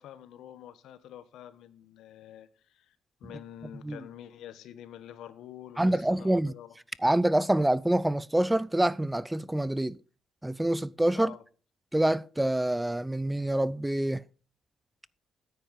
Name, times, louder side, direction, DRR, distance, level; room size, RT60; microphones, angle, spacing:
voice 1, 0.0-6.7 11.1-11.4, left 11 dB, 80° left, 1.1 m, -47 dB
voice 2, 5.8-6.5 7.0-10.0 10.4-11.3 11.9-14.2, right 1 dB, 10° right, 0.4 m, -26 dB
9.5 x 9.0 x 5.2 m
cardioid pair, 90°, 0 cm